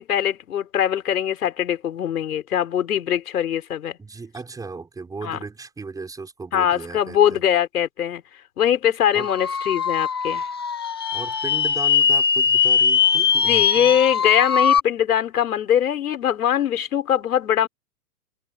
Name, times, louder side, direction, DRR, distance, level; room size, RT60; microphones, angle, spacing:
voice 1, 0.0-4.0 5.2-5.4 6.5-8.2 8.6-10.5 13.4-17.7, left 10 dB, 65° left, 6.9 m, -22 dB
voice 2, 4.0-7.4 9.1-9.3 11.1-14.0, right 4 dB, 5° right, 6.1 m, -36 dB
sound 1, 9.2-14.8, left 6 dB, 20° left, 0.4 m, -21 dB
hypercardioid pair, 150°, 48 cm